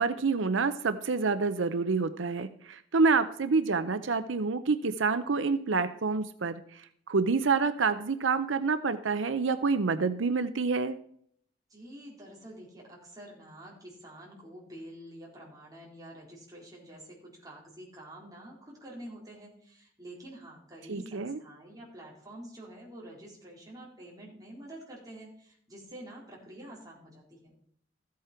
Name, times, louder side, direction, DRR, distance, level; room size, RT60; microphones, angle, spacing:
voice 1, 0.0-6.6 7.1-11.0 20.9-21.4, right 4 dB, 85° right, 11 dB, 0.7 m, -27 dB
voice 2, 11.7-27.5, right 1 dB, 20° right, -3 dB, 4.2 m, -48 dB
14.0 x 8.5 x 4.4 m, 0.65 s
head